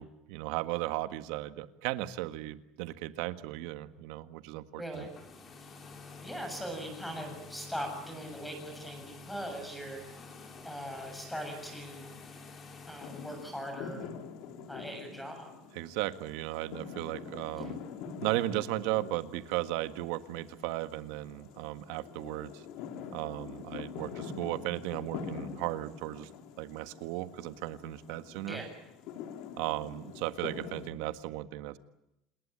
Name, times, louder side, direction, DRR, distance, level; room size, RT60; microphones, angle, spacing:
voice 1, 0.0-5.1 15.7-17.8 18.2-22.6 23.1-26.3 26.6-28.6 29.6-31.8, right 16 dB, 75° right, 11 dB, 1.6 m, -36 dB
voice 2, 4.8-5.1 6.2-10.0 10.6-12.1 12.9-14.1 14.7-15.5 17.5-17.7 28.4-28.7, equal, 5° left, 5 dB, 7.4 m, -40 dB
sound 1, 4.9-13.7, left 4 dB, 25° left, 4.3 m, -49 dB
sound 2, 13.0-30.9, left 6 dB, 60° left, 3.6 m, -45 dB
27.5 x 20.5 x 8.8 m, 0.85 s
cardioid pair, 155°, 0 cm